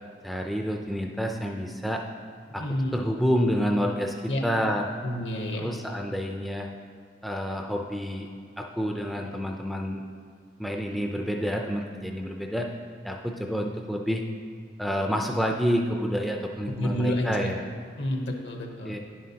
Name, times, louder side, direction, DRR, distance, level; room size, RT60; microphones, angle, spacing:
voice 1, 0.2-2.0 2.5-2.6 2.9-4.9 5.6-6.7 7.2-8.3 8.6-10.0 10.6-12.7 13.0-14.2 14.8-17.6 18.8-19.0, equal, ahead, 1 dB, 0.4 m, -28 dB
voice 2, 2.6-3.0 4.3-4.4 5.0-5.7 16.7-17.5 18.0-19.0, equal, 70° left, 2 dB, 0.9 m, -29 dB
10.5 x 7.5 x 2.8 m, 2.1 s
head